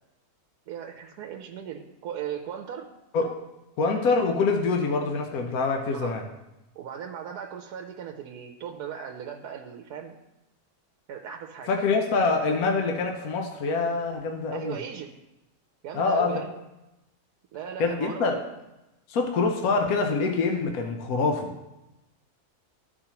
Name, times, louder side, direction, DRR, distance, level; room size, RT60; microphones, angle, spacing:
voice 1, 0.7-2.9 5.9-6.2 6.8-10.2 11.1-11.7 14.5-15.1 15.8-16.5 17.5-18.4, right 8 dB, 80° right, 3 dB, 1.1 m, -37 dB
voice 2, 3.8-6.2 11.7-14.8 15.9-16.4 17.8-18.4 19.1-21.5, left 4 dB, 70° left, 3 dB, 1.1 m, -25 dB
13.0 x 4.7 x 2.9 m, 0.98 s
omnidirectional pair, 1.7 m